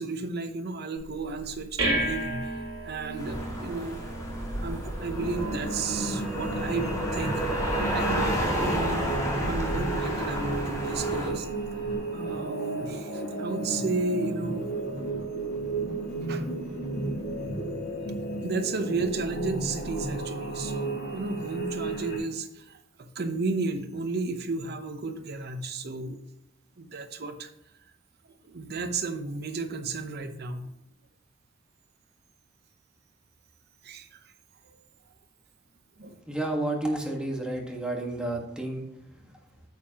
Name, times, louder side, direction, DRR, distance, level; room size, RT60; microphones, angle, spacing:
voice 1, 0.0-4.1 4.6-11.7 12.0-14.7 16.0-17.1 18.4-26.2 26.8-27.5 28.4-30.7 33.8-34.3 34.6-34.8 36.0-36.2, right 3 dB, 55° right, 8 dB, 0.8 m, -33 dB
sound 1, 1.0-11.9, right 1 dB, 80° right, 2.7 m, -37 dB
sound 2, 3.2-11.3, right 1 dB, 15° left, 1.9 m, -31 dB
sound 3, 5.1-22.2, right 2 dB, 55° left, 3.2 m, -33 dB
voice 2, 36.3-38.8, right 1 dB, 5° right, 0 dB, 1.5 m, -30 dB
9.1 x 7.5 x 2.9 m, 0.84 s
head